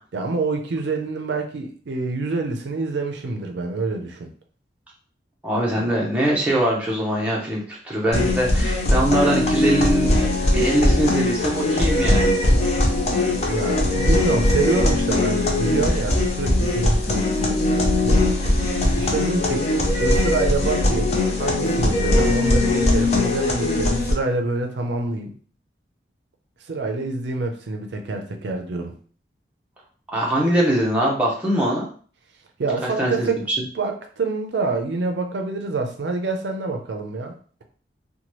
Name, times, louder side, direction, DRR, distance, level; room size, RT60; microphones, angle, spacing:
voice 1, 0.1-4.3 13.5-18.2 19.0-19.7 20.0-25.3 26.7-28.9 32.6-33.4 33.8-37.3, right 3 dB, 70° right, 4 dB, 0.5 m, -26 dB
voice 2, 5.4-12.4 30.1-31.9 32.8-33.3, right 1 dB, 5° right, -4 dB, 0.6 m, -22 dB
sound 1, 8.1-24.1, left 2 dB, 35° left, 0.5 m, -20 dB
2.8 x 2.2 x 3.0 m, 0.43 s
head